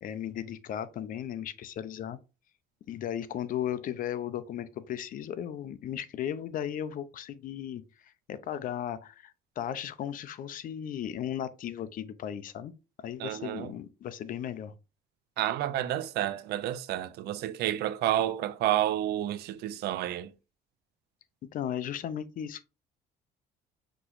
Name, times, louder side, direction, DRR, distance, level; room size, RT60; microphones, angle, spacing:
voice 1, 0.0-2.2 2.9-12.7 13.0-14.7 21.5-22.6, left 10 dB, 55° left, 0.5 m, -36 dB
voice 2, 13.2-13.7 15.4-20.3, right 12 dB, 70° right, 0.4 m, -30 dB
6.0 x 2.9 x 2.5 m
cardioid pair, 110°, 17 cm